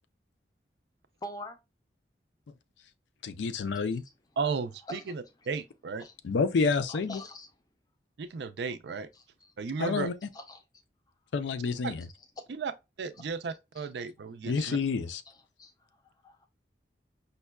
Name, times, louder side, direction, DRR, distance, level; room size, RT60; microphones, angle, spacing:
voice 1, 1.2-1.6 4.9-5.0 6.0-6.1 6.9-7.5 9.4-9.5 10.3-10.6 12.4-12.5 13.2-13.3 15.3-15.7 16.2-16.5, left 1 dB, 20° left, 0.4 m, -43 dB
voice 2, 3.2-4.0 6.2-7.2 9.8-10.1 11.3-12.0 14.5-15.2, left 4 dB, 85° left, 0.4 m, -28 dB
voice 3, 4.4-6.1 8.2-9.1 9.6-10.1 11.8-11.9 12.5-12.7 13.0-14.8, right 5 dB, 70° right, 0.4 m, -34 dB
5.3 x 2.2 x 2.2 m
head